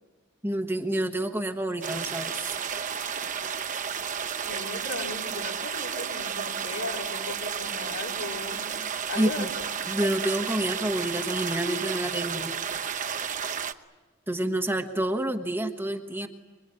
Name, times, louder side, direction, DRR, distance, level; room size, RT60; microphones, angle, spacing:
voice 1, 0.4-2.6 9.2-9.5 9.9-12.5 14.3-16.3, right 1 dB, 10° right, 6 dB, 1.3 m, -28 dB
sound 1, 1.8-13.7, right 7 dB, 35° right, 0.9 m, -32 dB
voice 2, 4.4-8.7 9.1-9.5, left 2 dB, 80° left, -1 dB, 4.4 m, -37 dB
25.0 x 22.5 x 9.9 m, 1.2 s
head